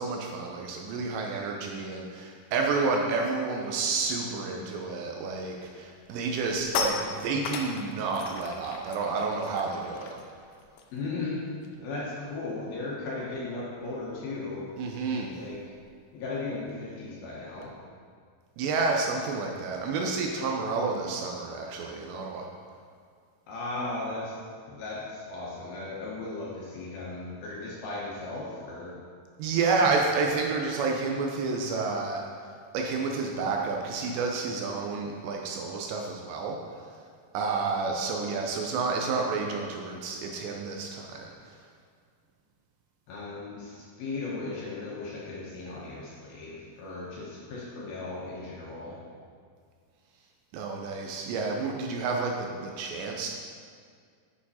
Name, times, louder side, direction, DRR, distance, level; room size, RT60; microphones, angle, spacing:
voice 1, 0.0-10.1 14.8-15.4 18.6-22.5 29.4-32.2 32.7-36.9 37.3-41.6 50.5-53.3, right 4 dB, 80° right, 1 dB, 2.7 m, -30 dB
sound 1, 5.4-5.6 6.0-11.9 12.2-12.4 12.7-17.7, left 5 dB, 85° left, 3.0 m, -39 dB
voice 2, 10.9-11.4 11.8-14.6 15.3-15.6 16.1-17.7 23.5-24.4 24.7-28.9 43.1-49.0, left 3 dB, 70° left, -5 dB, 2.5 m, -36 dB
8.5 x 7.0 x 4.2 m, 2.1 s
omnidirectional pair, 5.4 m